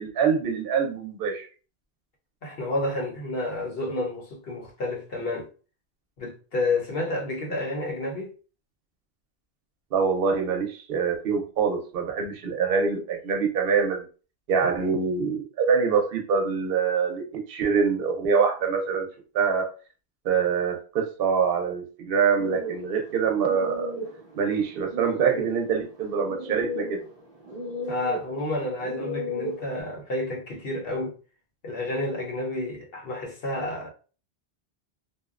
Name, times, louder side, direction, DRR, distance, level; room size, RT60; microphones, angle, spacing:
voice 1, 0.0-1.5 9.9-14.0 14.5-19.1 19.3-19.7 20.2-23.9 24.4-27.0, right 6 dB, 65° right, 0.8 m, -25 dB
voice 2, 2.4-5.5 6.2-8.3 14.6-14.7 27.9-31.2 31.6-33.9, left 2 dB, 65° left, 1.0 m, -30 dB
sound 1, 22.4-29.8, left 1 dB, 25° right, 1.0 m, -35 dB
2.6 x 2.1 x 2.4 m
omnidirectional pair, 1.1 m